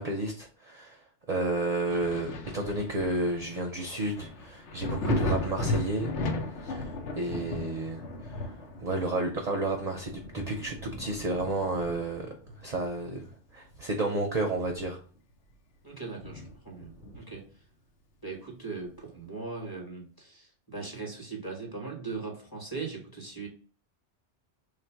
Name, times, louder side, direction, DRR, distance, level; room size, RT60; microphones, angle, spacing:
voice 1, 0.0-6.1 6.6-8.5 8.8-12.3 12.6-15.0, right 2 dB, 50° right, 3 dB, 0.5 m, -31 dB
Thunder, 1.9-13.2 13.7-15.2 15.5-15.6 16.2-17.5 18.9-19.0, left 2 dB, 90° left, 1.0 m, -36 dB
voice 2, 15.8-17.5 18.2-23.5, right 4 dB, 20° left, 0 dB, 1.0 m, -39 dB
3.3 x 2.5 x 4.4 m, 0.43 s
omnidirectional pair, 1.1 m